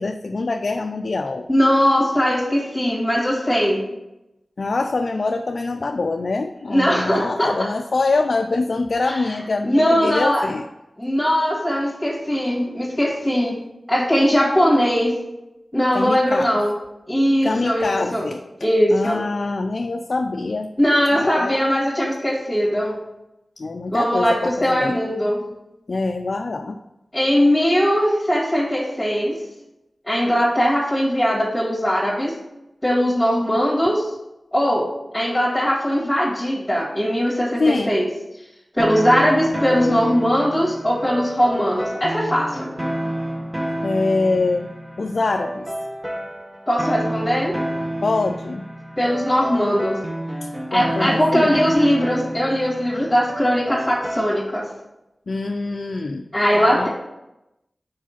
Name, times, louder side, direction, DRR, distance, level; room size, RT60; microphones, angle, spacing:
voice 1, 0.0-1.5 4.6-10.6 15.9-16.6 17.4-18.4 18.9-20.7 21.1-21.6 23.6-25.0 25.9-26.8 37.6-37.9 43.8-44.7 45.0-45.7 48.0-48.7 50.7-51.7 55.3-56.2 56.5-56.9, left 3 dB, 70° left, 5 dB, 0.4 m, -24 dB
voice 2, 1.5-3.8 6.7-7.7 9.1-9.3 9.6-10.5 11.0-13.6 13.9-15.2 15.7-16.7 17.1-18.2 18.6-19.2 20.8-23.0 23.9-25.4 27.1-29.4 30.1-32.3 32.8-34.1 34.5-34.9 35.1-38.1 38.7-42.7 46.7-47.6 49.0-50.0 50.7-54.7 56.3-56.9, equal, 10° left, -5 dB, 1.8 m, -20 dB
sound 1, 38.8-54.7, right 1 dB, 20° right, 1.0 m, -29 dB
4.8 x 4.6 x 5.7 m, 0.91 s
wide cardioid pair, 55°, 0 cm